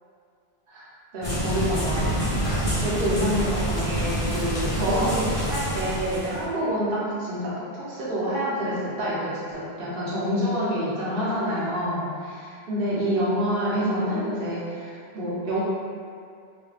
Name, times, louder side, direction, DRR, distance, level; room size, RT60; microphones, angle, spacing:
voice 1, 1.1-2.4 2.8-15.6, equal, 60° right, -9 dB, 1.1 m, -27 dB
sound 1, 1.2-6.4, equal, 30° left, 0.7 m, -27 dB
3.1 x 2.2 x 3.1 m, 2.3 s
omnidirectional pair, 1.1 m